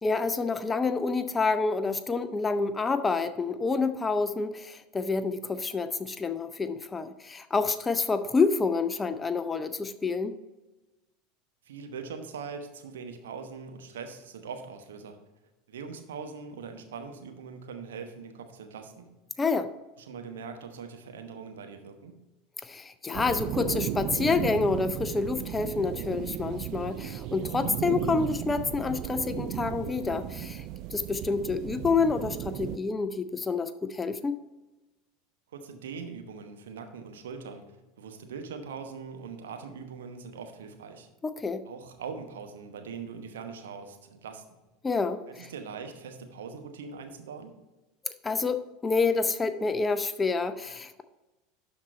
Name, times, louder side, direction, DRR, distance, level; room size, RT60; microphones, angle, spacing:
voice 1, 0.0-10.3 19.4-19.7 22.6-30.6 30.9-34.4 41.2-41.6 44.8-45.5 48.0-51.0, left 4 dB, 15° left, 11 dB, 0.5 m, -28 dB
voice 2, 11.7-15.2 15.7-19.1 20.0-22.1 35.5-41.1 41.6-44.4 45.3-47.5, right 5 dB, 65° right, 6 dB, 1.0 m, -41 dB
sound 1, 23.1-32.8, right 12 dB, 45° right, 0.3 m, -35 dB
12.0 x 4.3 x 4.2 m, 1.1 s
figure-of-eight pair, 75°, 0 cm